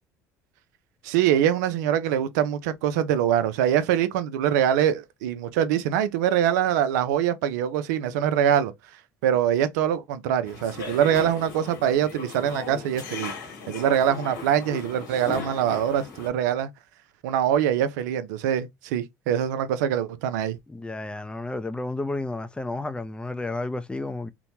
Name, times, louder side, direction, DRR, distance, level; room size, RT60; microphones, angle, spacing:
voice 1, 1.0-8.7 9.2-13.3 13.7-16.7 17.2-20.6, right 10 dB, 80° right, 0.4 m, -24 dB
sound 1, 10.5-16.3, left 5 dB, 85° left, 1.2 m, -38 dB
voice 2, 20.7-24.3, left 2 dB, 10° left, 0.4 m, -31 dB
2.9 x 2.1 x 2.8 m
hypercardioid pair, 70°, 9 cm